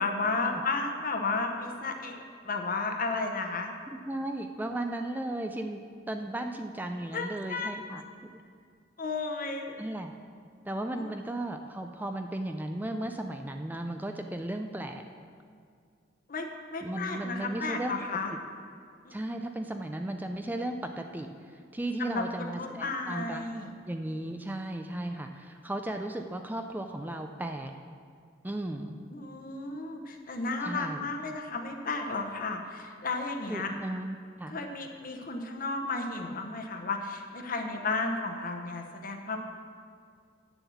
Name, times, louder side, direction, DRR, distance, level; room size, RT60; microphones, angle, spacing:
voice 1, 0.0-3.7 7.1-7.7 9.0-9.7 11.0-11.1 16.3-18.3 19.0-19.1 22.0-23.7 29.1-33.7 34.5-39.4, left 3 dB, 50° left, 4 dB, 1.0 m, -33 dB
voice 2, 4.1-5.8 6.1-8.0 8.3-8.4 9.8-10.1 10.7-15.0 16.8-17.9 19.1-21.3 21.7-23.4 23.9-27.7 28.4-29.0 30.6-31.0 33.5-34.6, right 1 dB, 10° right, 5 dB, 0.4 m, -35 dB
8.9 x 7.1 x 7.0 m, 2.2 s
head